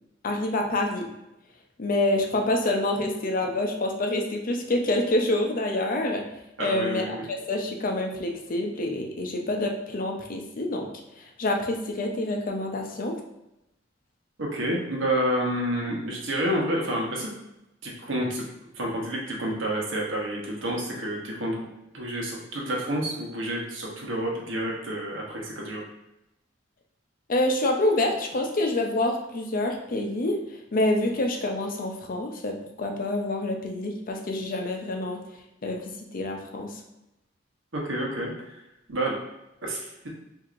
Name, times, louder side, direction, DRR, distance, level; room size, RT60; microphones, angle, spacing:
voice 1, 0.2-1.1 1.8-6.3 6.6-7.2 7.5-10.9 11.2-13.2 27.3-35.2 35.6-35.8 36.1-36.8, left 1 dB, 45° left, 2 dB, 0.6 m, -27 dB
voice 2, 6.6-7.2 14.4-17.3 17.8-18.4 18.7-21.7 21.9-25.8 37.7-38.3 38.9-39.1 39.6-40.1, right 1 dB, 85° right, -2 dB, 1.0 m, -29 dB
4.5 x 2.7 x 2.5 m, 0.88 s
head